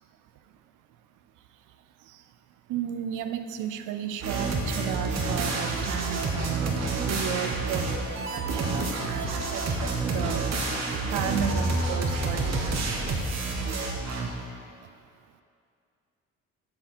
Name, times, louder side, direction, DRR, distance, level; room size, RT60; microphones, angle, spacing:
voice 1, 2.7-10.5 11.1-12.8, right 9 dB, 85° right, 9 dB, 0.5 m, -34 dB
sound 1, 4.2-14.3, right 3 dB, 60° right, 1.2 m, -28 dB
7.7 x 6.1 x 4.3 m, 2.4 s
cardioid pair, 90°, 30 cm